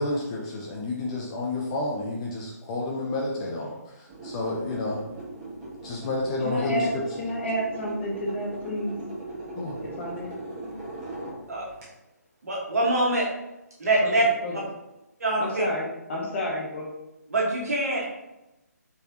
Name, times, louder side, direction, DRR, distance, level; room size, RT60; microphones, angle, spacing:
voice 1, 0.0-5.0 5.8-7.0 9.6-9.8, left 2 dB, 20° left, -2 dB, 0.5 m, -30 dB
sound 1, 4.1-11.8, right 2 dB, 20° right, 1.2 m, -39 dB
voice 2, 6.4-6.9 7.2-8.9 9.8-10.4 14.0-14.6 15.4-16.9, equal, 45° left, -2 dB, 1.2 m, -30 dB
voice 3, 12.4-13.3 13.8-14.2 14.5-14.6 15.2-15.6 17.3-18.0, right 1 dB, 60° right, -3 dB, 1.5 m, -24 dB
4.5 x 3.3 x 2.7 m, 0.96 s
figure-of-eight pair, 145°, 9 cm